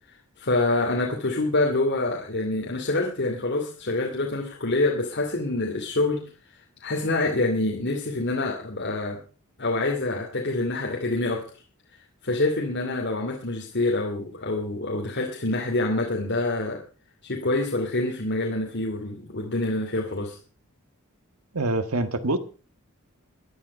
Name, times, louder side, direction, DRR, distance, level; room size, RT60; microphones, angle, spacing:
voice 1, 0.4-6.3 6.8-9.2 9.6-11.4 12.2-16.8 17.2-20.4, left 2 dB, 55° left, 0 dB, 2.7 m, -26 dB
voice 2, 21.5-22.4, right 2 dB, 90° right, 10 dB, 1.6 m, -25 dB
16.0 x 11.0 x 5.4 m, 0.38 s
head